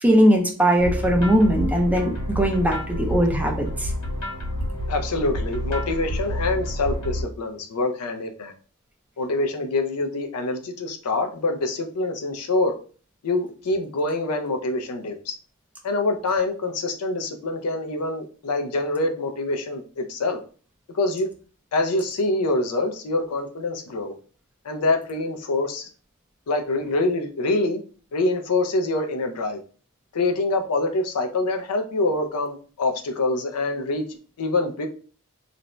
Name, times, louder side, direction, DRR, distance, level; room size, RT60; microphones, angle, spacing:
voice 1, 0.0-3.9, equal, 5° right, 1 dB, 0.4 m, -20 dB
sound 1, 0.8-7.2, equal, 65° left, 1.2 m, -29 dB
voice 2, 4.9-8.5 9.2-12.7 13.2-15.3 15.8-20.4 20.9-21.3 21.7-24.1 24.6-25.9 26.5-27.8 28.1-29.6 30.1-34.1 34.4-34.9, left 2 dB, 85° left, 5 dB, 0.5 m, -25 dB
2.5 x 2.1 x 2.9 m, 0.40 s
head